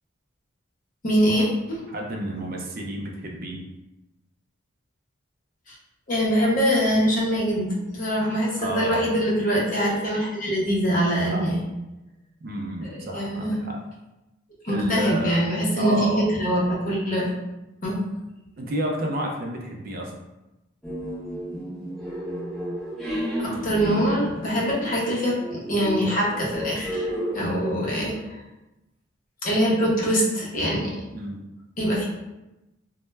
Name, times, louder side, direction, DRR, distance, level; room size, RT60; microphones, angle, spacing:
voice 1, 1.0-1.8 5.7-5.8 6.1-11.6 12.8-13.7 14.6-17.3 17.8-18.0 23.4-27.1 27.3-28.4 29.4-30.9 31.8-32.0, equal, 40° left, -4 dB, 0.6 m, -23 dB
voice 2, 1.9-3.6 8.6-9.1 11.3-11.5 12.4-13.8 14.7-15.4 15.8-16.3 18.6-20.1 31.1-31.4, right 1 dB, 45° right, 1 dB, 0.4 m, -30 dB
sound 1, 20.8-28.2, equal, ahead, 0.6 m, -32 dB
2.0 x 2.0 x 3.2 m, 0.97 s
head